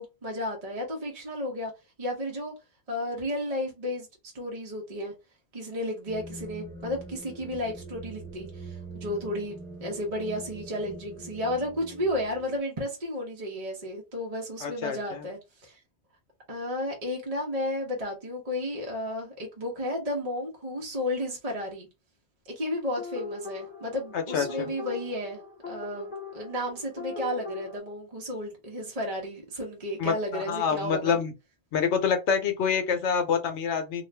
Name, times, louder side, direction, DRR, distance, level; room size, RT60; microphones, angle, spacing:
voice 1, 0.0-1.7 2.0-2.5 2.9-4.1 4.3-5.1 5.5-15.8 16.5-21.9 22.5-31.2, left 1 dB, 35° right, 0.8 m, -33 dB
sound 1, 6.1-12.6, right 2 dB, 5° left, 0.7 m, -43 dB
voice 2, 14.6-15.3 24.1-24.7 30.0-31.3 31.7-34.0, left 6 dB, 70° left, 1.0 m, -27 dB
sound 2, 23.0-27.8, left 4 dB, 50° left, 0.9 m, -39 dB
2.5 x 2.4 x 3.2 m
omnidirectional pair, 1.2 m